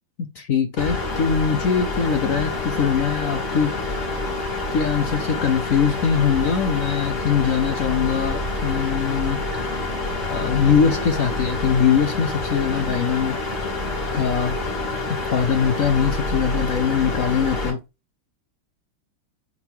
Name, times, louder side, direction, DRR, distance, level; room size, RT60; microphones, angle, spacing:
voice 1, 0.4-3.7 4.7-9.8 10.3-13.4 14.1-14.6 15.3-17.8, left 7 dB, 60° left, 8 dB, 0.9 m, -22 dB
sound 1, 0.8-17.7, left 2 dB, 40° left, 2.8 m, -27 dB
8.2 x 3.6 x 4.5 m, 0.26 s
omnidirectional pair, 2.2 m